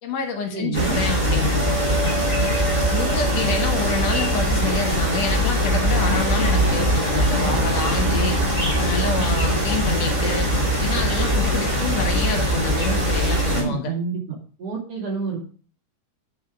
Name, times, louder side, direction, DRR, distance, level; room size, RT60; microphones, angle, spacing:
voice 1, 0.0-1.8 2.9-8.4 8.8-10.5 10.8-13.9, left 5 dB, 60° left, 4 dB, 2.0 m, -27 dB
voice 2, 0.5-1.0 13.5-14.2 14.6-15.4, right 6 dB, 50° right, -2 dB, 3.2 m, -28 dB
sound 1, 0.7-13.6, equal, 15° right, 3.6 m, -21 dB
9.1 x 4.9 x 5.1 m, 0.40 s
omnidirectional pair, 3.8 m